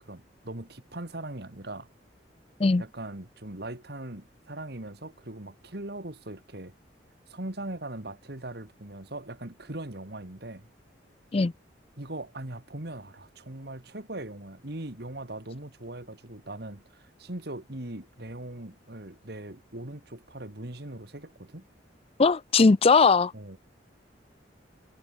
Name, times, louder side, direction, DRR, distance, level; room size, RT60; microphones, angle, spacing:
voice 1, 0.0-1.9 2.8-6.7 7.3-10.7 12.0-21.6 23.3-23.6, right 1 dB, 60° right, 2.4 m, -40 dB
voice 2, 22.2-23.3, left 4 dB, 35° left, 0.5 m, -19 dB
head